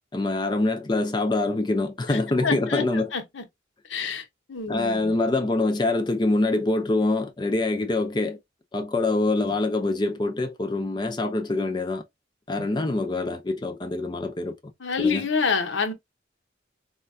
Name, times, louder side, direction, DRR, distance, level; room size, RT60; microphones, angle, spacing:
voice 1, 0.1-3.1 4.0-4.1 4.7-8.4 8.7-12.0 12.5-14.6 15.0-15.3, left 2 dB, 20° left, 0.4 m, -25 dB
voice 2, 2.1-3.4 3.9-5.1 12.6-12.7 14.8-15.9, left 5 dB, 75° left, 0.8 m, -28 dB
4.3 x 2.2 x 2.5 m
head